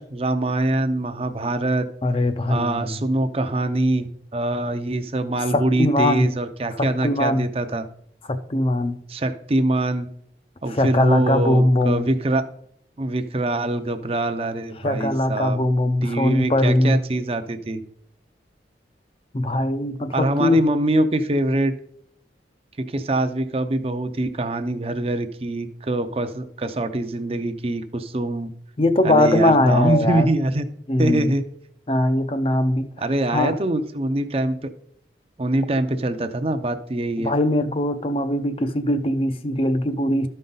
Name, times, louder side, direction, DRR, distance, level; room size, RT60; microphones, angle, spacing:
voice 1, 0.0-1.8 2.5-7.9 9.1-10.1 10.6-12.5 13.0-15.6 16.0-17.8 20.1-21.7 22.8-28.5 29.0-30.6 31.0-31.4 33.0-34.6 35.4-37.3, right 2 dB, 30° right, 0.5 m, -24 dB
voice 2, 2.0-3.0 5.5-6.3 6.8-7.5 8.3-9.0 10.7-12.1 14.8-17.0 19.3-20.6 28.8-30.3 30.9-31.4 31.9-32.9 33.3-33.6 37.2-40.3, left 1 dB, 30° left, 0.5 m, -21 dB
12.5 x 5.3 x 3.9 m
head